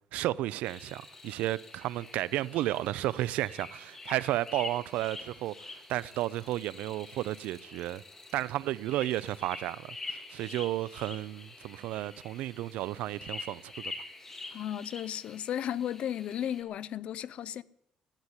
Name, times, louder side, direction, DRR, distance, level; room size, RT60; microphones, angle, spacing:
voice 1, 0.1-8.0 8.3-13.9, right 15 dB, 90° right, 0.4 m, -33 dB
sound 1, 0.6-16.6, left 3 dB, 20° left, 1.9 m, -46 dB
voice 2, 14.5-17.6, left 10 dB, 55° left, 0.5 m, -34 dB
13.0 x 9.8 x 9.7 m
cardioid pair, 155°, 2 cm